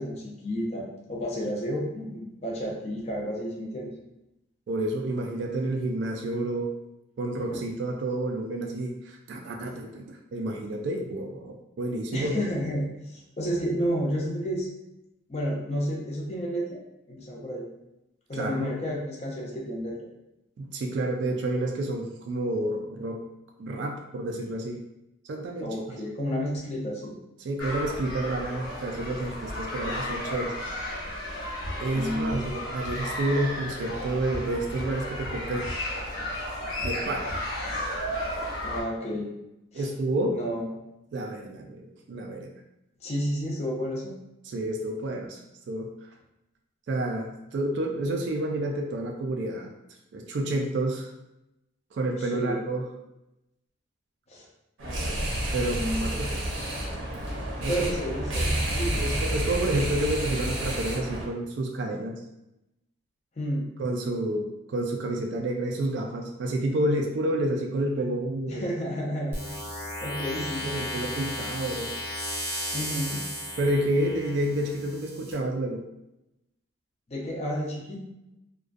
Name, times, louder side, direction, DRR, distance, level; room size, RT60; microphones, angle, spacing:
voice 1, 0.0-3.9 12.1-14.7 15.3-16.8 17.1-17.6 18.3-20.1 25.6-27.2 31.9-32.7 38.6-39.3 39.7-39.9 40.3-40.7 43.0-44.2 52.2-52.6 54.3-54.5 55.6-56.0 57.7-58.5 58.8-59.1 63.4-63.6 68.5-69.6 70.0-70.7 72.7-73.2 77.1-78.0, equal, 35° left, -2 dB, 0.5 m, -31 dB
voice 2, 4.7-6.7 7.2-12.5 18.3-18.8 20.6-23.3 23.6-24.8 25.2-26.0 27.4-30.5 31.8-35.7 36.8-37.4 39.7-40.4 41.1-42.5 44.4-45.4 45.7-46.1 46.9-49.7 50.1-51.1 51.9-52.8 55.5-56.3 57.6-57.9 59.0-62.2 63.8-68.7 70.6-72.0 73.6-75.8, right 1 dB, 60° right, 1 dB, 0.3 m, -29 dB
sound 1, 27.6-38.8, left 1 dB, 85° left, 0.7 m, -33 dB
sound 2, 54.8-61.3, right 1 dB, 85° right, 0.7 m, -29 dB
sound 3, 69.3-75.3, equal, 10° right, 0.6 m, -35 dB
2.4 x 2.2 x 2.4 m, 0.88 s
head